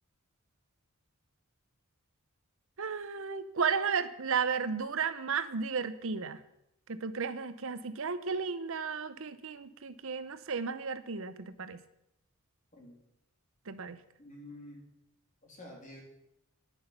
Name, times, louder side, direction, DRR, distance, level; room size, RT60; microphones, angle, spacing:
voice 1, 2.8-6.4 6.9-11.8 13.7-14.0, right 5 dB, 65° right, 13 dB, 0.8 m, -34 dB
voice 2, 14.2-14.9 15.4-16.0, left 1 dB, 35° left, 0 dB, 3.1 m, -49 dB
10.5 x 10.0 x 5.7 m, 0.82 s
head